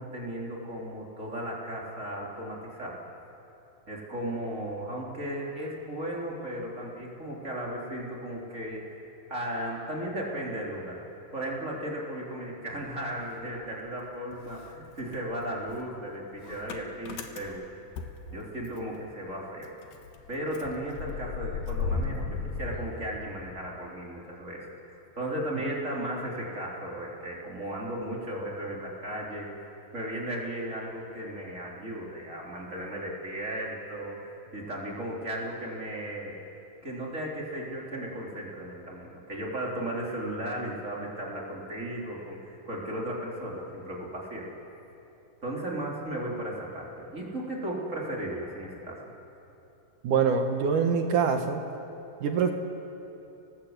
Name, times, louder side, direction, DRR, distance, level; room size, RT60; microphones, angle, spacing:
voice 1, 0.0-3.0 3.9-9.0 9.3-11.0 11.3-17.7 18.3-19.7 20.3-24.7 25.1-29.5 29.9-34.2 34.5-36.4 36.8-44.5 45.4-49.0, right 1 dB, 20° right, -3 dB, 3.5 m, -35 dB
Motor vehicle (road) / Engine starting, 12.8-14.0 14.3-19.0 19.3-19.4 19.6-23.7, left 4 dB, 75° left, 3.4 m, -37 dB
voice 2, 50.0-51.6 52.2-52.5, right 6 dB, 65° right, 5 dB, 2.3 m, -24 dB
30.0 x 19.0 x 8.1 m, 3.0 s
omnidirectional pair, 4.8 m